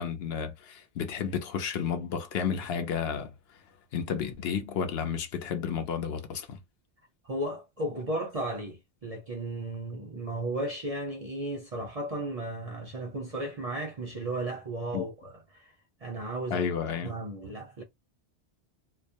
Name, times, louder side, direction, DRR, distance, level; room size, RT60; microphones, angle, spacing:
voice 1, 0.0-3.3 3.9-6.6 14.9-15.0 16.5-17.1, left 7 dB, 70° left, 0.8 m, -32 dB
voice 2, 7.2-15.7 16.0-16.6 17.0-17.8, right 1 dB, 45° right, 0.5 m, -35 dB
2.3 x 2.0 x 2.6 m
omnidirectional pair, 1.1 m